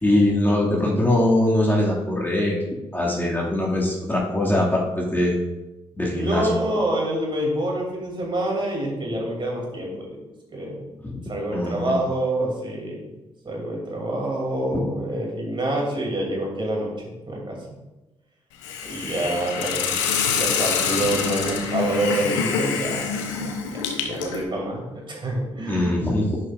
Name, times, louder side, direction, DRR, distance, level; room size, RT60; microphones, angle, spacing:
voice 1, 0.0-2.6 2.9-5.3 5.9-6.5 11.0-11.2 11.5-11.9 25.7-26.4, left 1 dB, 15° left, -4 dB, 2.2 m, -22 dB
voice 2, 6.1-10.2 10.5-10.9 11.3-13.1 13.4-16.9 17.3-17.6 18.8-20.0 20.3-25.9, right 1 dB, 35° right, -1 dB, 2.7 m, -27 dB
Hiss, 18.6-24.4, left 6 dB, 80° left, 0.8 m, -26 dB
10.5 x 6.6 x 2.5 m, 1.0 s
figure-of-eight pair, 40°, 15 cm